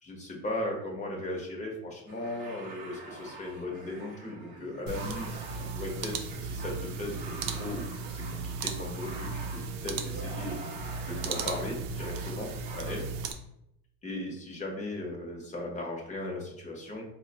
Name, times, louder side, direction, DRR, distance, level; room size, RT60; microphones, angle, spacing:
voice 1, 0.0-10.6 11.0-13.1 14.0-17.0, left 1 dB, 20° left, -1 dB, 1.0 m, -37 dB
sound 1, 2.1-13.1, right 2 dB, 25° right, 0.9 m, -45 dB
sound 2, 4.9-13.3, right 5 dB, 70° right, 0.6 m, -36 dB
4.4 x 2.2 x 2.9 m, 0.80 s
cardioid pair, 135°, 36 cm